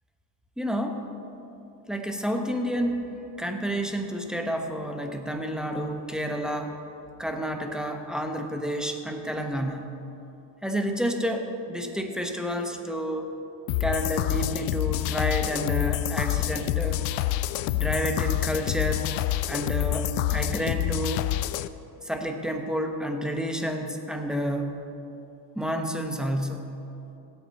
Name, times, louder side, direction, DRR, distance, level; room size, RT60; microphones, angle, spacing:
voice 1, 0.6-1.0 1.9-3.0 3.4-6.8 7.2-9.9 10.6-13.3 13.8-17.0 17.7-19.1 19.5-21.3 22.0-24.8 25.5-26.7, equal, ahead, 4 dB, 0.9 m, -30 dB
sound 1, 13.7-21.7, left 15 dB, 75° left, 0.5 m, -27 dB
17.0 x 8.0 x 4.1 m, 2.9 s
supercardioid pair, 105°, 43 cm